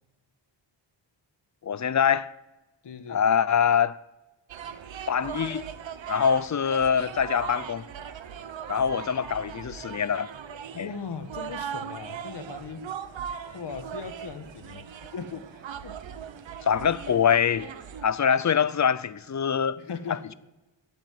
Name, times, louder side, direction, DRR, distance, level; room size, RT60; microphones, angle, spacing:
voice 1, 1.6-2.3 3.1-4.0 5.1-5.7 6.1-7.8 8.7-10.3 10.7-10.9 16.6-17.7 18.0-19.8 20.1-20.3, left 7 dB, 40° left, 0.6 m, -24 dB
voice 2, 2.8-3.2 10.8-12.9 13.5-16.0 19.8-20.3, left 5 dB, 65° left, 1.7 m, -39 dB
sound 1, 4.5-18.1, right 8 dB, 80° right, 1.1 m, -39 dB
14.5 x 8.8 x 9.4 m
wide cardioid pair, 135°, 45 cm